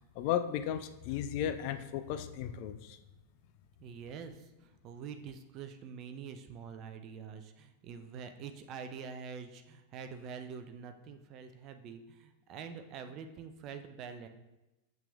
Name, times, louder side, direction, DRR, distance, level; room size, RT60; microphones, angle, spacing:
voice 1, 0.2-3.0, left 10 dB, 45° left, 10 dB, 0.4 m, -35 dB
voice 2, 3.8-14.3, right 6 dB, 35° right, 7 dB, 0.5 m, -46 dB
7.6 x 5.8 x 2.3 m, 1.0 s
figure-of-eight pair, 90°, 0 cm